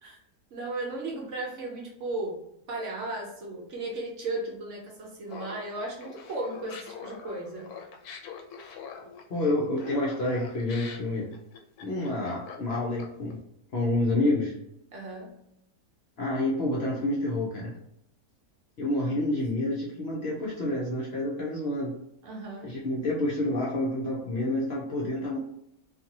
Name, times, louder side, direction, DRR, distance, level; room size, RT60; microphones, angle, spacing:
voice 1, 0.5-2.4 2.7-7.7 14.9-15.3 19.0-19.1 22.2-22.7, right 2 dB, 60° right, -1 dB, 0.9 m, -35 dB
Laughter, 5.3-13.3, left 6 dB, 80° left, 1.1 m, -43 dB
voice 2, 9.3-11.3 11.8-13.4 13.7-14.5 16.2-17.7 18.8-21.9 22.6-25.4, left 1 dB, 60° left, -4 dB, 0.7 m, -28 dB
2.7 x 2.5 x 2.7 m, 0.78 s
omnidirectional pair, 1.6 m